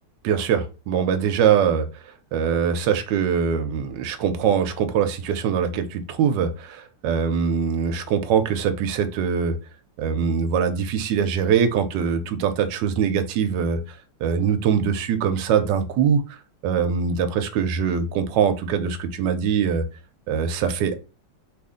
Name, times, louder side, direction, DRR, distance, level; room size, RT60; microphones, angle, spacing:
voice 1, 0.2-1.9 2.3-9.6 10.0-13.8 14.2-16.4 16.6-19.8 20.3-20.9, right 7 dB, 85° right, 8 dB, 1.3 m, -22 dB
3.2 x 2.5 x 3.6 m, 0.31 s
omnidirectional pair, 1.9 m